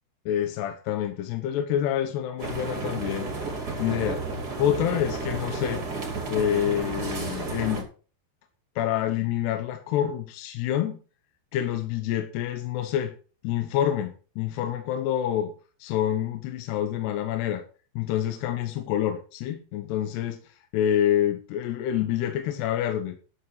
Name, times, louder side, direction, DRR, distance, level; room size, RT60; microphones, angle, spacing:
voice 1, 0.3-3.3 3.8-4.2 4.6-5.8 6.3-7.9 8.8-11.0 11.5-13.1 13.4-15.5 15.8-17.6 18.0-20.4 20.7-23.2, left 11 dB, 75° left, 7 dB, 2.9 m, -27 dB
sound 1, 2.4-7.8, right 3 dB, 25° right, 2.5 m, -32 dB
12.5 x 8.0 x 4.7 m, 0.37 s
omnidirectional pair, 5.2 m